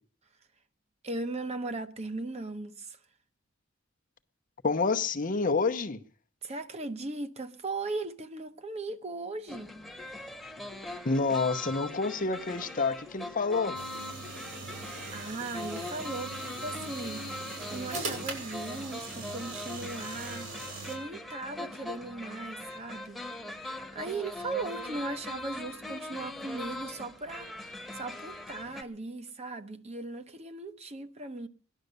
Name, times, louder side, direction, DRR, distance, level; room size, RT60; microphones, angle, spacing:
voice 1, 1.0-3.0 6.4-9.8 15.1-17.4 17.6-23.2 23.5-27.5 27.9-31.5, right 3 dB, 35° right, 1.0 m, -38 dB
voice 2, 4.6-6.0 11.0-13.8, left 4 dB, 45° left, 0.8 m, -28 dB
sound 1, 9.5-28.8, left 1 dB, ahead, 1.2 m, -41 dB
sound 2, 13.7-21.0, right 3 dB, 85° right, 5.7 m, -41 dB
18.0 x 11.0 x 6.7 m
head